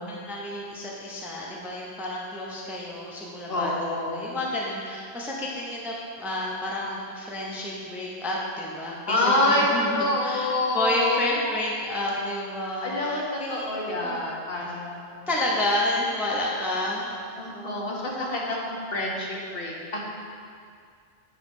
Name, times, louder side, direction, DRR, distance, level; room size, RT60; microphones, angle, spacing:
voice 1, 0.0-3.7 4.1-14.2 14.6-14.7 15.3-17.2 17.5-17.7, left 1 dB, ahead, -4 dB, 0.7 m, -30 dB
voice 2, 3.5-4.3 9.1-11.7 12.8-15.2 17.4-20.0, left 1 dB, 55° left, -3 dB, 1.2 m, -27 dB
9.5 x 3.2 x 5.4 m, 2.3 s
omnidirectional pair, 1.2 m